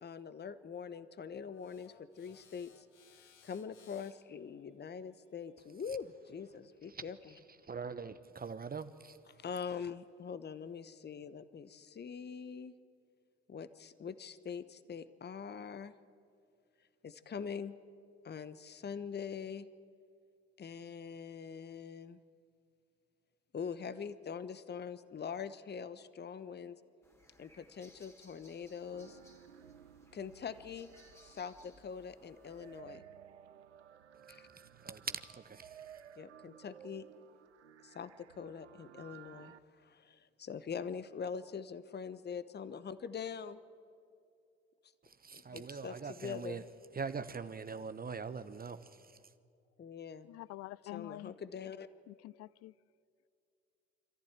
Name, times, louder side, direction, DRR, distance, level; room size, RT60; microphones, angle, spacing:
voice 1, 0.0-2.9 3.4-7.3 9.3-12.7 13.5-15.9 17.0-17.8 18.2-19.7 20.6-22.2 23.5-26.8 27.4-29.2 30.1-30.9 31.2-33.0 34.3-34.5 36.2-37.1 37.8-43.6 45.3-46.6 49.8-50.3 50.9-51.9, left 6 dB, 30° left, 1.0 m, -43 dB
sound 1, 1.5-6.7, left 6 dB, 85° left, 1.4 m, -66 dB
voice 2, 7.6-9.2 34.5-36.0 45.0-46.6 46.9-49.2, right 5 dB, 25° right, 1.0 m, -43 dB
sound 2, 27.0-32.8, left 1 dB, 10° left, 2.5 m, -64 dB
sound 3, 28.9-39.6, right 10 dB, 90° right, 0.5 m, -57 dB
voice 3, 50.2-51.3 52.1-52.7, left 17 dB, 50° left, 0.5 m, -47 dB
26.5 x 14.5 x 8.9 m
figure-of-eight pair, 50°, 34 cm